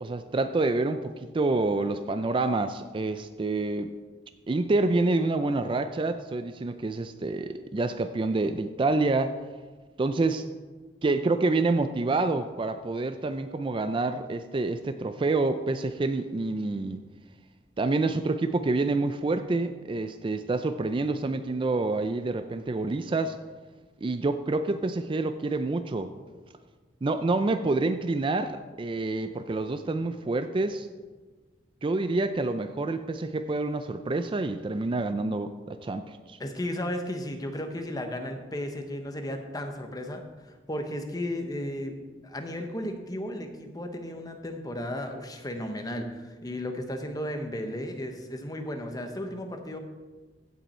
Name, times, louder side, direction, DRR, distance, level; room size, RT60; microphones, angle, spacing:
voice 1, 0.0-3.9 4.5-9.4 10.0-10.4 11.0-17.0 17.8-23.4 24.0-26.1 27.0-30.9 31.8-36.4, right 3 dB, 30° right, 10 dB, 0.4 m, -27 dB
voice 2, 36.4-40.2 40.7-41.9 42.2-49.8, left 1 dB, 20° left, 5 dB, 1.0 m, -34 dB
16.0 x 5.5 x 4.3 m, 1.3 s
head